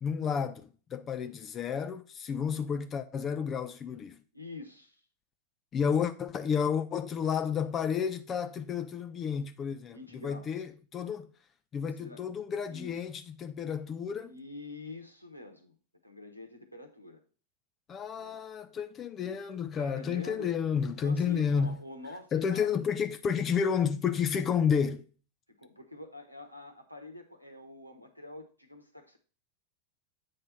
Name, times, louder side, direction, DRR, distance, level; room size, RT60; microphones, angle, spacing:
voice 1, 0.0-4.2 5.7-11.3 11.7-13.1 13.4-14.3 17.9-21.8 22.3-25.0, left 7 dB, 25° left, 0.5 m, -31 dB
voice 2, 4.3-5.0 9.9-10.6 11.8-12.2 12.7-13.0 14.2-15.7 16.0-17.2 18.1-18.4 19.8-20.5 21.0-22.7 25.5-29.2, left 2 dB, 90° right, 1.2 m, -46 dB
8.2 x 3.3 x 5.7 m
figure-of-eight pair, 90°, 0 cm